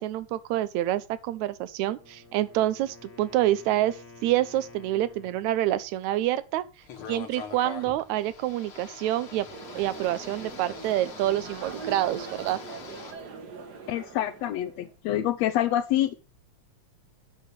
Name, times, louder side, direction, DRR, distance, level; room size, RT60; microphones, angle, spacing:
voice 1, 0.0-6.6 7.1-9.5 9.8-12.6, right 14 dB, 80° right, 1.9 m, -27 dB
Wind instrument woodwind instrument, 1.8-5.7, left 3 dB, 30° left, 1.5 m, -50 dB
sound 1, 6.8-13.1, left 6 dB, 55° left, 2.0 m, -44 dB
sound 2, 9.5-14.9, right 5 dB, 45° right, 1.4 m, -42 dB
voice 2, 13.9-16.1, left 12 dB, 75° left, 1.6 m, -26 dB
8.8 x 5.5 x 6.7 m
omnidirectional pair, 3.4 m